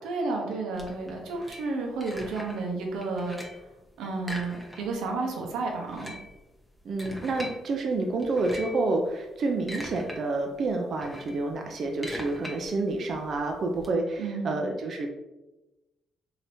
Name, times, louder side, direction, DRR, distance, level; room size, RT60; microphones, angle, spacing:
voice 1, 0.0-3.6 4.0-6.1 14.2-14.5, right 3 dB, 90° right, 1 dB, 0.7 m, -32 dB
sound 1, 0.7-2.7 3.0-3.7 4.2-5.1 5.3-5.4 5.8-7.6 8.2-8.8 9.4-10.2 10.5-13.9, equal, ahead, 0.7 m, -41 dB
voice 2, 6.9-15.1, right 3 dB, 55° right, 3 dB, 0.4 m, -29 dB
3.3 x 2.7 x 2.6 m, 1.0 s
cardioid pair, 90°, 0 cm